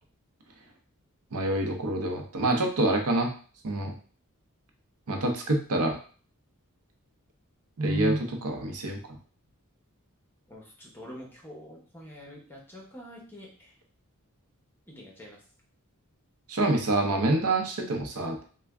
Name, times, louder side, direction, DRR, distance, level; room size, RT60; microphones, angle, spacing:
voice 1, 1.3-3.3 3.6-3.9 5.1-6.0 7.8-9.0 16.5-18.4, right 2 dB, 80° right, 3 dB, 0.7 m, -26 dB
voice 2, 10.5-13.7 14.9-15.4, equal, 10° left, -2 dB, 0.8 m, -46 dB
3.3 x 2.2 x 3.4 m, 0.41 s
head